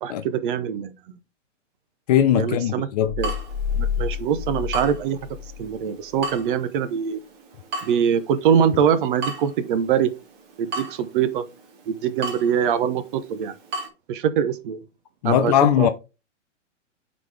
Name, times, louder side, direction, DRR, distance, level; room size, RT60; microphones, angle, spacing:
voice 1, 0.0-0.9 2.3-2.9 3.2-3.3 3.7-5.3 5.6-7.2 7.8-10.1 10.6-11.4 11.9-13.5 14.1-14.8 15.2-15.9, right 8 dB, 45° right, 0.8 m, -23 dB
voice 2, 2.1-3.1 15.2-15.9, left 10 dB, 35° left, 0.5 m, -19 dB
sound 1, 3.0-5.8, left 8 dB, 5° left, 0.9 m, -29 dB
Water tap faucet / Drip, 3.2-13.9, right 2 dB, 25° right, 1.5 m, -37 dB
9.3 x 4.2 x 3.3 m
hypercardioid pair, 140°, 37 cm